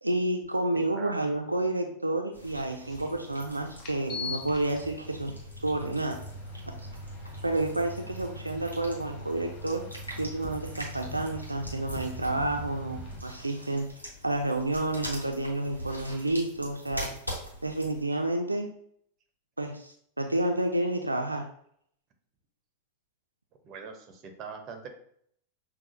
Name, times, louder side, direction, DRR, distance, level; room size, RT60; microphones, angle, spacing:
voice 1, 0.0-5.3 5.6-6.2 6.7-6.8 7.4-9.8 10.2-13.9 14.2-17.1 17.6-18.7 19.6-21.5, right 2 dB, 85° right, 3 dB, 0.4 m, -30 dB
voice 2, 0.7-1.1 23.6-24.9, right 5 dB, 35° right, 5 dB, 0.7 m, -42 dB
sound 1, 2.3-18.0, equal, 90° left, 1.0 m, -44 dB
sound 2, 2.9-3.0 3.8-13.2, left 1 dB, 30° left, 0.9 m, -41 dB
5.8 x 2.3 x 2.5 m, 0.66 s
figure-of-eight pair, 90°, 0 cm